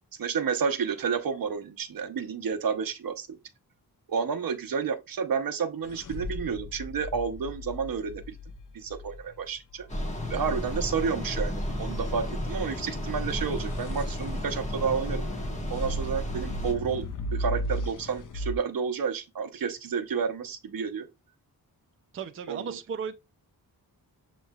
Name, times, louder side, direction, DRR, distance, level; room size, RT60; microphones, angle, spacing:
voice 1, 0.2-3.4 4.1-8.4 8.7-9.9 10.3-15.2 15.7-17.0 17.3-21.1 22.5-22.8, right 6 dB, 65° right, 0.7 m, -30 dB
sound 1, 5.8-9.9 13.2-18.6, equal, 55° left, 0.6 m, -37 dB
sound 2, 9.9-16.7, left 1 dB, 20° left, 1.1 m, -32 dB
voice 2, 22.1-23.1, right 6 dB, 35° right, 0.4 m, -35 dB
7.1 x 3.0 x 2.3 m
wide cardioid pair, 135°, 38 cm